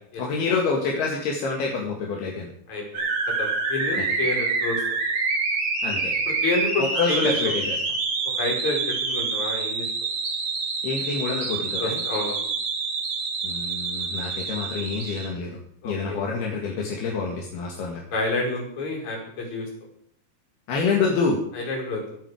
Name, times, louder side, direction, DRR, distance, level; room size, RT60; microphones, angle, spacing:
voice 1, 0.2-2.5 4.0-4.1 5.8-6.1 6.8-7.7 10.8-12.0 13.4-15.6 15.8-18.0 20.7-21.4, left 4 dB, 75° left, -1 dB, 4.1 m, -27 dB
voice 2, 2.7-3.0 3.4-4.8 6.3-7.5 8.4-9.8 11.8-12.4 15.8-16.2 18.1-19.7 21.5-22.2, left 2 dB, 45° left, -2 dB, 6.6 m, -28 dB
sound 1, 2.9-15.3, right 4 dB, 75° right, 5.8 m, -27 dB
24.0 x 9.1 x 5.0 m, 0.65 s
omnidirectional pair, 4.6 m